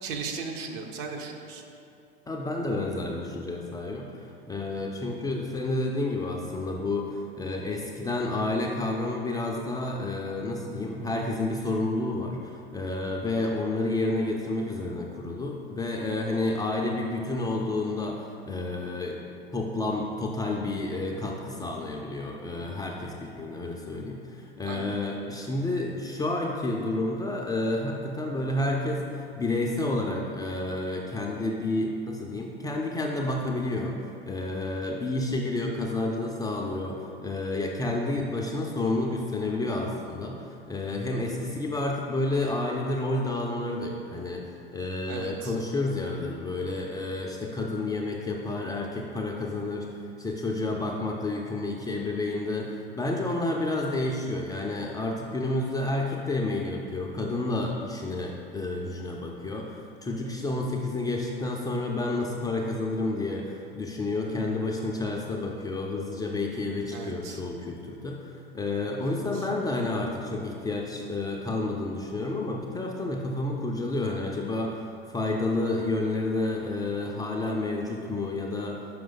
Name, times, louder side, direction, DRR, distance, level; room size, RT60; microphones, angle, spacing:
voice 1, 0.0-1.7 24.6-25.0 45.1-45.6 66.9-67.4 69.0-69.5, right 5 dB, 50° right, 3 dB, 0.9 m, -37 dB
voice 2, 2.3-19.2 19.5-74.8 75.1-78.8, left 2 dB, 10° left, 0 dB, 0.4 m, -30 dB
5.9 x 4.8 x 3.9 m, 2.7 s
hypercardioid pair, 85°, 31 cm